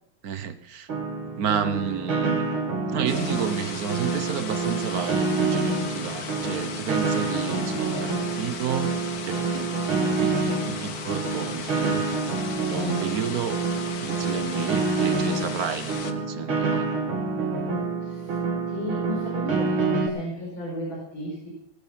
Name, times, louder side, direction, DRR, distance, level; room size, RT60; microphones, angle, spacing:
voice 1, 0.2-0.9 1.2-2.6 2.9-9.0 9.2-12.1 12.7-13.6 13.9-16.9, right 7 dB, 50° right, 12 dB, 1.3 m, -31 dB
Piano, 0.9-20.1, right 4 dB, 70° right, 2.9 m, -27 dB
sound 1, 3.1-16.1, left 6 dB, 50° left, 1.6 m, -37 dB
voice 2, 18.7-21.5, left 1 dB, 65° left, -4 dB, 6.2 m, -34 dB
19.5 x 11.5 x 5.7 m, 0.65 s
omnidirectional pair, 2.4 m